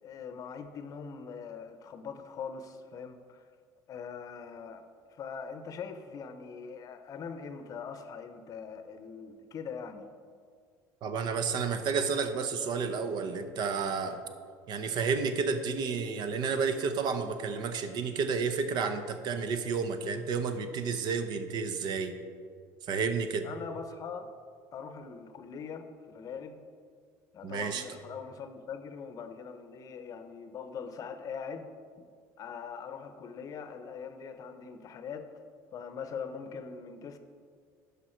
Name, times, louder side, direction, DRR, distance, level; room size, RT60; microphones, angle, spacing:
voice 1, 0.0-3.4 3.9-10.1 23.4-24.3 24.7-26.6 27.3-31.7 32.0-32.1 32.4-35.3 35.7-37.2, left 6 dB, 45° left, 9 dB, 0.7 m, -42 dB
voice 2, 11.0-14.2 14.7-22.1 22.9-23.5 27.4-27.8, right 5 dB, 55° right, 9 dB, 0.7 m, -31 dB
11.0 x 5.2 x 4.4 m, 2.1 s
supercardioid pair, 105°, 8 cm